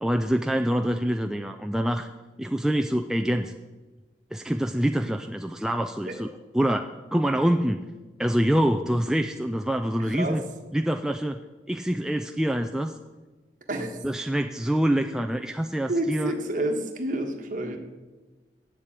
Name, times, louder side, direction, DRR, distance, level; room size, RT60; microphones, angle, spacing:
voice 1, 0.0-2.1 2.4-3.5 4.3-6.3 6.5-7.8 8.2-10.4 10.7-11.4 11.7-13.0 14.0-16.3, equal, 5° right, 4 dB, 0.3 m, -25 dB
voice 2, 10.0-10.4 13.7-14.0 15.9-17.8, right 1 dB, 45° right, 4 dB, 1.4 m, -29 dB
8.3 x 7.4 x 8.6 m, 1.2 s
head